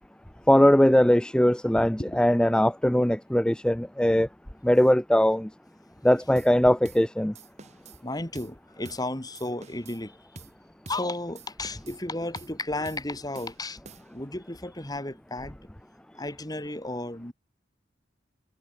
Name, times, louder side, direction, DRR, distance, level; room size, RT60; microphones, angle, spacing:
voice 1, 0.5-4.3 4.6-5.5 6.0-7.3, equal, 5° left, 0.5 m, -20 dB
sound 1, 6.4-6.6 6.8-7.1 7.3-8.0 8.3-8.6 8.8-9.1 9.3-10.0 10.4-10.6 10.9-11.1 11.4-12.0 12.4-12.6 12.9-13.1 13.3-14.3, right 3 dB, 40° right, 3.2 m, -47 dB
voice 2, 8.0-10.2 10.9-13.8 14.1-15.6 16.1-17.3, left 2 dB, 20° left, 2.6 m, -33 dB
head